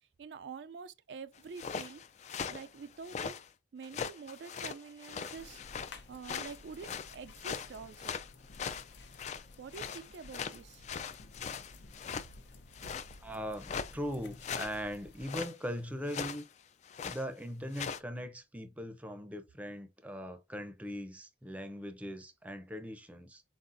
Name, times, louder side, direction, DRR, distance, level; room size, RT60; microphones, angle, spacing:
voice 1, 0.2-2.0 2.5-3.3 3.7-8.2 9.6-10.8, right 5 dB, 75° right, 0.4 m, -47 dB
sound 1, 1.4-3.5 3.8-6.0 6.2-9.4 9.7-12.3 12.7-13.2 13.6-13.9 14.4-14.8 15.2-15.5 16.1-16.4 16.8-17.2 17.7-18.0, left 6 dB, 40° left, 0.3 m, -40 dB
sound 2, 5.4-15.4, left 2 dB, 75° left, 0.7 m, -54 dB
voice 2, 13.2-16.4 17.1-23.4, equal, 10° right, 0.6 m, -40 dB
4.4 x 4.0 x 2.5 m
head